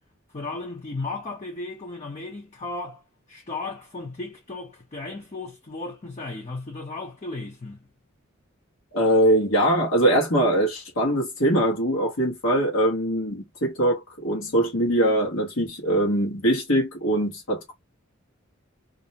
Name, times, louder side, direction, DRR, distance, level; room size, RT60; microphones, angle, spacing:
voice 1, 0.3-3.0 3.3-7.8, left 3 dB, 35° left, 0.7 m, -35 dB
voice 2, 8.9-17.7, right 1 dB, 75° left, 1.0 m, -22 dB
2.5 x 2.0 x 2.7 m
head